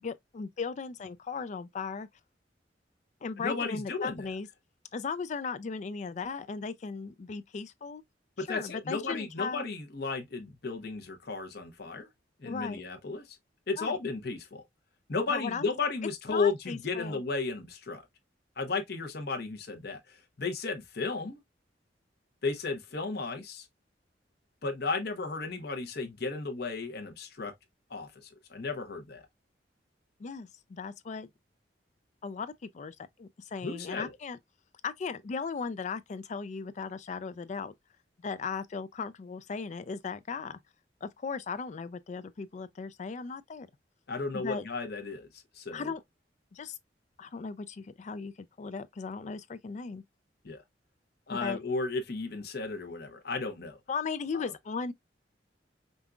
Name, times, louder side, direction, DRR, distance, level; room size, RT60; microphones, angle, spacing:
voice 1, 0.0-2.1 3.2-4.5 4.9-8.0 8.4-9.6 12.5-12.8 13.8-14.0 15.3-15.7 16.3-17.2 30.2-31.3 32.2-34.4 34.8-37.7 38.2-40.6 41.0-43.7 44.3-44.6 45.7-46.0 46.5-46.8 47.2-48.3 48.6-50.0 51.3-51.6 53.9-54.9, left 5 dB, 40° left, 0.3 m, -37 dB
voice 2, 3.4-4.3 8.4-12.1 12.4-13.2 13.7-14.6 15.1-18.0 18.6-21.4 22.4-23.6 24.6-27.5 27.9-28.1 28.5-29.2 33.6-34.1 44.1-45.3 45.5-45.9 50.4-50.6 51.3-53.8 54.3-54.5, left 4 dB, 60° left, 0.9 m, -34 dB
5.3 x 2.4 x 2.2 m
head